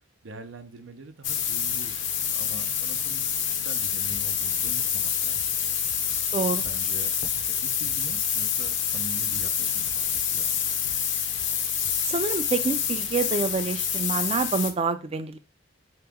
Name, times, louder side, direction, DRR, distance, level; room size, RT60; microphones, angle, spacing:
voice 1, 0.2-5.8 6.2-6.4 6.6-7.1 7.4-10.8, right 3 dB, 85° right, 8 dB, 0.6 m, -44 dB
sound 1, 1.2-14.7, left 8 dB, 65° left, 0.6 m, -27 dB
Drum kit / Bass drum, 4.1-4.3 4.6-6.3 6.6-8.3 8.6-10.3 10.7-12.0, left 1 dB, 85° left, 0.9 m, -49 dB
voice 2, 6.3-6.6 12.0-15.4, right 4 dB, 30° right, 10 dB, 0.4 m, -27 dB
3.8 x 2.9 x 3.5 m, 0.30 s
head